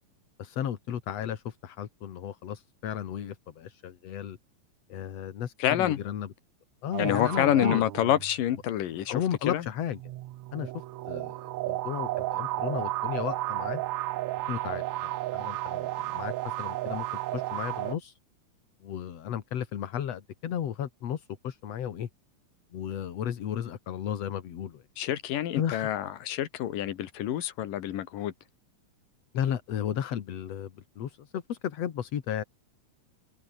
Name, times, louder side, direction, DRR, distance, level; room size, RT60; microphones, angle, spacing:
voice 1, 0.4-4.4 4.9-6.3 6.8-7.8 9.1-10.0 10.5-10.7 11.1-11.4 11.7-13.8 14.5-17.1 17.3-18.2 18.8-22.1 22.7-24.8 25.6-25.9 29.3-32.4, left 9 dB, 55° left, 2.6 m, -34 dB
voice 2, 5.6-6.0 7.0-9.6 25.0-28.3, left 12 dB, 85° left, 3.2 m, -27 dB
sound 1, 6.9-8.6 9.9-18.0, right 16 dB, 75° right, 1.8 m, -33 dB
omnidirectional pair, 3.8 m